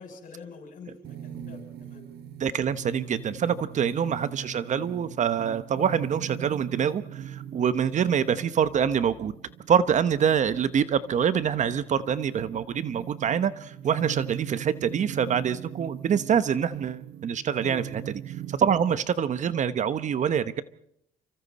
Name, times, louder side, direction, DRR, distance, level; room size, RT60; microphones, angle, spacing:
voice 1, 0.0-2.0 17.6-17.9, left 5 dB, 50° left, 3 dB, 7.5 m, -45 dB
sound 1, 1.0-19.1, right 10 dB, 75° right, 1.4 m, -41 dB
voice 2, 2.4-9.3 9.7-18.0 18.5-20.6, right 8 dB, 45° right, 13 dB, 1.0 m, -25 dB
29.0 x 25.0 x 4.2 m, 0.71 s
cardioid pair, 110°, 17 cm